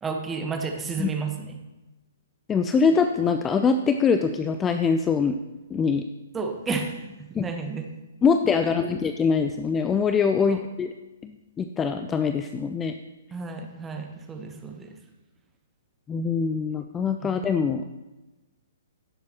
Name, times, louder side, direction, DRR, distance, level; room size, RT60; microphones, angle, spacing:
voice 1, 0.0-1.6 6.3-7.0 7.3-7.9 8.6-8.7 10.5-10.6 13.3-15.0 17.2-17.3, right 4 dB, 10° right, 3 dB, 1.1 m, -32 dB
voice 2, 2.5-5.4 5.7-6.0 7.3-7.4 8.2-10.9 11.2-12.9 16.1-17.8, left 5 dB, 15° left, 8 dB, 0.4 m, -23 dB
16.0 x 7.4 x 3.0 m, 1.1 s
figure-of-eight pair, 120°, 0 cm